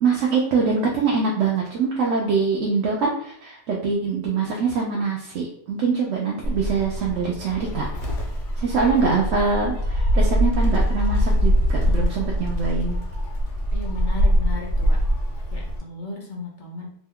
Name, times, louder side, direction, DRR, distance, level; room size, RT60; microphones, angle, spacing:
voice 1, 0.0-7.9 8.6-13.0, right 4 dB, 80° right, -2 dB, 0.9 m, -23 dB
Gull seagull, 6.4-15.8, equal, 80° left, 1.1 m, -23 dB
voice 2, 13.7-15.0 15.5-16.9, left 2 dB, 50° left, -1 dB, 0.7 m, -35 dB
2.9 x 2.2 x 3.5 m, 0.69 s
omnidirectional pair, 1.2 m